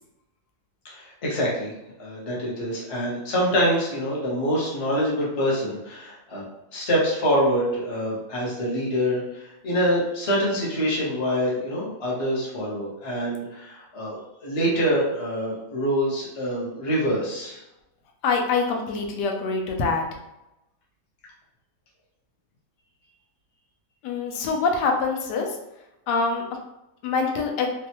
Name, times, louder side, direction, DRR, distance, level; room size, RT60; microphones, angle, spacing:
voice 1, 0.8-1.7 2.0-6.4 6.7-17.6, equal, 30° left, -6 dB, 0.6 m, -25 dB
voice 2, 18.2-20.0 24.0-25.5 26.1-26.4 27.0-27.7, left 4 dB, 85° left, 1 dB, 1.2 m, -24 dB
3.1 x 2.2 x 2.9 m, 0.91 s
omnidirectional pair, 1.8 m